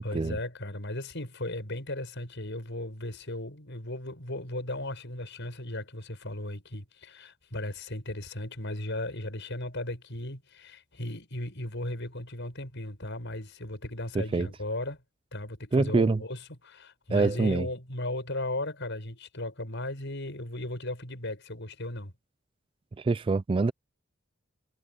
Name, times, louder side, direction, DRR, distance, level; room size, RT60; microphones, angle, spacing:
voice 1, 0.0-15.0 15.3-22.1, left 1 dB, 60° left, 7.2 m, -36 dB
voice 2, 14.1-14.5 15.7-16.2 17.1-17.7 23.0-23.7, right 3 dB, 25° right, 0.3 m, -25 dB
head